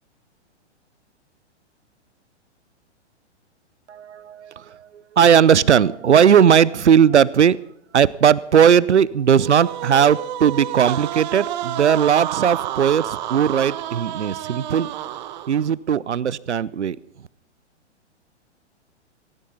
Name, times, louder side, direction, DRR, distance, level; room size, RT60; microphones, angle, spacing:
voice 1, 3.9-4.9 5.1-7.6 7.9-14.9 15.5-17.0, right 8 dB, 75° right, 21 dB, 0.8 m, -17 dB
sound 1, 9.4-15.7, right 12 dB, 40° right, 1.2 m, -30 dB
18.5 x 17.5 x 4.0 m, 0.72 s
figure-of-eight pair, 115°, 35 cm